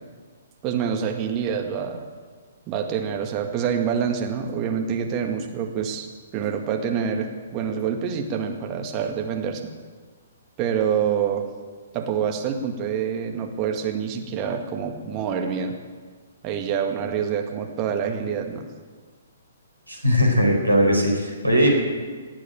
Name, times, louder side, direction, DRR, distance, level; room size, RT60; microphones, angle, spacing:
voice 1, 0.6-2.0 2.7-6.1 6.3-9.6 10.6-11.4 11.9-15.8 16.4-18.6, right 7 dB, 25° right, 3 dB, 1.9 m, -26 dB
voice 2, 19.9-21.7, equal, 90° right, 1 dB, 4.5 m, -19 dB
19.0 x 8.5 x 9.0 m, 1.5 s
figure-of-eight pair, 120°, 0 cm